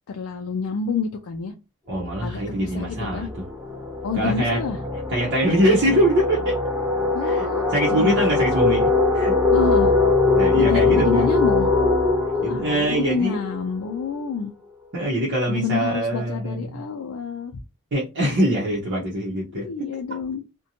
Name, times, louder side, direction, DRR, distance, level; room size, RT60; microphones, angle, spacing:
voice 1, 0.1-1.5 2.2-3.3 4.0-4.8 7.1-8.6 9.5-9.9 10.5-11.7 12.3-14.5 15.5-17.6 19.5-20.4, left 5 dB, 70° left, 0.4 m, -28 dB
voice 2, 1.9-3.4 4.2-4.6 5.1-6.6 7.2-9.3 10.3-11.3 12.4-13.4 14.9-16.8 17.9-19.9, right 1 dB, 55° right, 0.7 m, -23 dB
sound 1, 2.1-2.3 2.6-14.2, left 3 dB, 10° right, 0.6 m, -22 dB
2.6 x 2.1 x 2.7 m
head